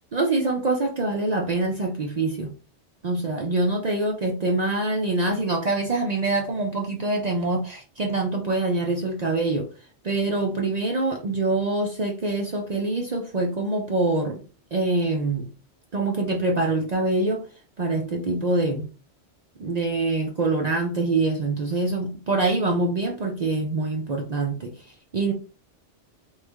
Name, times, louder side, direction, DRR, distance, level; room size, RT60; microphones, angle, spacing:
voice 1, 0.1-2.5 3.0-9.7 10.0-14.4 14.7-15.4 15.9-17.4 17.8-18.9 19.6-24.7 25.1-25.3, right 2 dB, 55° right, 1 dB, 0.5 m, -25 dB
3.1 x 2.4 x 3.4 m, 0.35 s
omnidirectional pair, 1.2 m